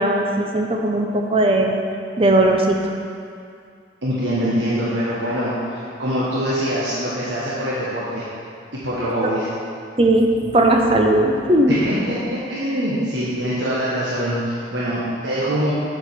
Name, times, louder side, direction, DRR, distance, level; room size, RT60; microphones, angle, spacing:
voice 1, 0.0-1.7 2.2-2.9 10.0-10.3 10.5-11.8, right 1 dB, 30° right, 2 dB, 0.7 m, -17 dB
voice 2, 4.0-8.3 8.8-9.5 11.7-15.7, equal, 75° right, -8 dB, 1.2 m, -24 dB
7.5 x 5.0 x 6.0 m, 2.3 s
head